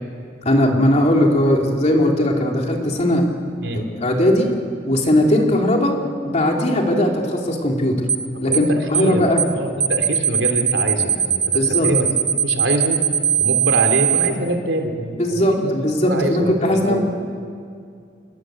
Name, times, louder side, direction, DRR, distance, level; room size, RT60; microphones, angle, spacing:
voice 1, 0.4-3.2 3.7-4.5 4.9-6.0 6.3-8.0 8.4-9.4 11.5-11.9 15.2-17.0, left 1 dB, 40° left, 1 dB, 3.2 m, -18 dB
sound 1, 8.1-8.3 8.5-8.7 8.9-9.1 9.4-9.5 9.8-14.3, right 9 dB, 30° right, 1.1 m, -19 dB
voice 2, 8.3-9.3 9.5-12.1 12.4-13.0 13.4-15.7 16.1-17.0, right 1 dB, 80° right, 4 dB, 3.1 m, -24 dB
27.0 x 21.0 x 7.8 m, 2.3 s
head